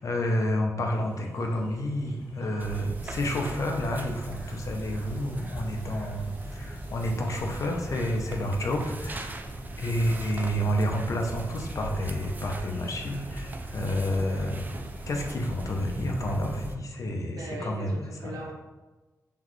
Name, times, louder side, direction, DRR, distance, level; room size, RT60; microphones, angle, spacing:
voice 1, 0.0-9.4 9.8-14.6 15.1-18.4, equal, 55° left, 2 dB, 0.7 m, -30 dB
sound 1, 0.9-16.0, equal, 10° left, 1.3 m, -52 dB
sound 2, 2.6-16.8, right 1 dB, 30° right, 0.3 m, -38 dB
sound 3, 4.0-10.6, left 2 dB, 85° left, 0.8 m, -50 dB
voice 2, 15.2-15.5 17.3-18.5, right 1 dB, 85° right, -1 dB, 0.9 m, -40 dB
4.0 x 3.2 x 3.1 m, 1.2 s
wide cardioid pair, 120°, 6 cm